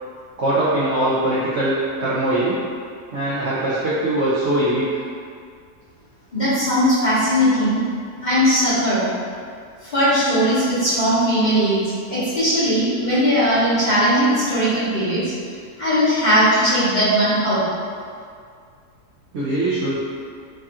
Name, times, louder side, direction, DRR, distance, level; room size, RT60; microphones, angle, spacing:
voice 1, 0.4-2.6 3.1-4.9 19.3-20.0, right 1 dB, 75° right, -8 dB, 0.6 m, -21 dB
voice 2, 6.3-7.8 8.2-9.0 9.8-11.8 12.1-15.3 15.8-17.6, equal, 40° left, -14 dB, 0.7 m, -18 dB
3.4 x 2.3 x 2.7 m, 2.2 s
omnidirectional pair, 1.7 m